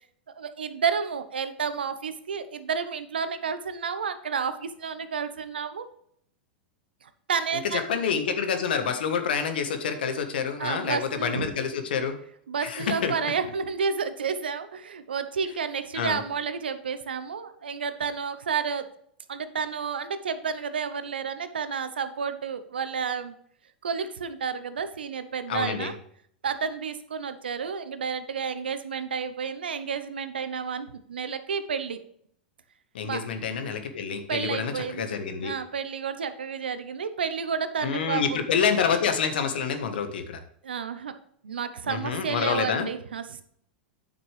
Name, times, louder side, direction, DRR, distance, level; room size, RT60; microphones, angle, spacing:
voice 1, 0.4-5.9 7.0-7.9 10.6-11.5 12.5-18.9 19.3-23.3 23.8-26.0 26.4-32.0 33.0-33.2 34.3-35.1 35.4-38.5 40.6-41.1 41.4-43.4, right 6 dB, 85° right, 11 dB, 0.9 m, -31 dB
voice 2, 7.7-12.1 12.6-13.3 15.9-16.2 25.5-25.9 32.9-35.5 37.8-40.4 41.9-42.9, left 6 dB, 75° left, 8 dB, 1.3 m, -27 dB
9.2 x 6.9 x 3.3 m, 0.66 s
hypercardioid pair, 100°, 5 cm